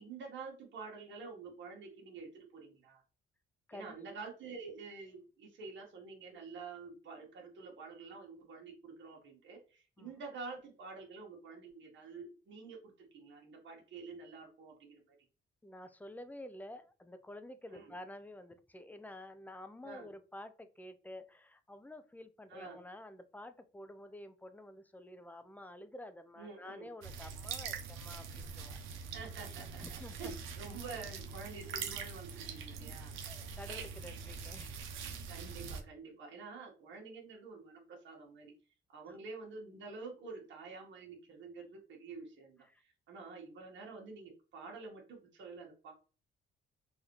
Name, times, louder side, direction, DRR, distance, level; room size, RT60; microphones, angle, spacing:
voice 1, 0.0-3.0 3.7-15.1 17.7-17.8 19.8-20.1 22.5-22.8 26.4-26.9 29.1-33.1 35.3-38.5 38.9-45.9, right 4 dB, 70° right, -1 dB, 1.5 m, -48 dB
voice 2, 15.6-28.8 29.8-30.4 32.8-33.0 33.3-34.7 39.1-39.2 42.7-42.8, left 1 dB, 10° left, 10 dB, 0.5 m, -50 dB
sound 1, 27.0-35.8, right 6 dB, 90° right, 0.7 m, -43 dB
3.9 x 2.6 x 3.1 m, 0.35 s
cardioid pair, 90°, 20 cm